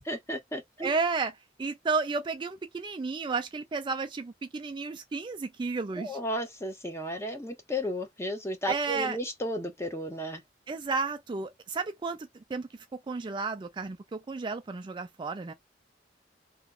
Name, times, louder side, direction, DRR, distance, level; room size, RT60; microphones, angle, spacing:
voice 1, 0.0-0.9 6.0-10.4, equal, 15° left, 0.7 m, -34 dB
voice 2, 0.8-1.3 1.6-6.2 8.7-9.2 10.7-12.2 12.5-15.5, right 4 dB, 25° right, 0.3 m, -32 dB
2.9 x 2.2 x 3.6 m
head